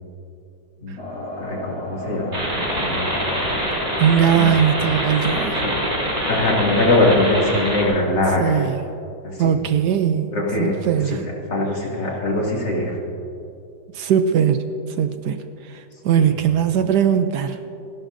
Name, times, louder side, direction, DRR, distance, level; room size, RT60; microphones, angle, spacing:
sound 1, 1.0-6.7, equal, 45° left, 2.7 m, -34 dB
voice 1, 1.4-3.2 4.3-4.5 5.6-5.7 6.3-8.6 9.2-9.5 10.3-10.8 11.1-11.2 11.5-13.0 16.2-16.3, left 2 dB, 70° left, -4 dB, 3.2 m, -22 dB
sound 2, 2.3-7.8, equal, 25° right, 3.6 m, -24 dB
voice 2, 4.0-5.6 8.4-8.8 9.4-11.2 13.9-14.7 15.0-17.6, right 8 dB, 70° right, 9 dB, 1.1 m, -20 dB
29.5 x 11.5 x 2.7 m, 2.7 s
omnidirectional pair, 2.0 m